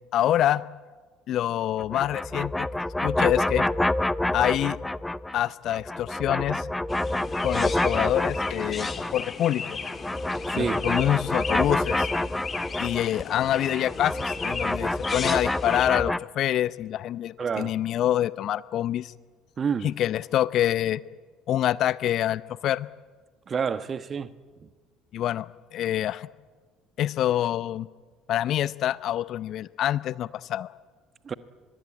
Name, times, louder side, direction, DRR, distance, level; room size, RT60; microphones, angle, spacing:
voice 1, 0.1-0.6 1.3-2.7 3.0-3.7 4.3-4.8 5.3-6.7 7.4-9.8 10.5-12.1 12.8-19.1 19.8-21.0 21.5-22.9 25.1-25.5 25.7-26.3 27.0-27.9 28.3-30.7, left 12 dB, 55° left, 0.7 m, -26 dB
sound 1, 1.8-5.4 5.7-9.3 9.6-16.2, left 1 dB, 10° left, 0.7 m, -28 dB
Chirp tweet, 6.9-15.9, left 5 dB, 35° left, 2.6 m, -36 dB
voice 2, 10.5-10.8 17.4-17.7 19.6-19.9 23.5-24.3 24.6-24.7 31.2-31.3, right 6 dB, 35° right, 1.3 m, -29 dB
24.5 x 21.5 x 8.7 m
figure-of-eight pair, 60°, 0 cm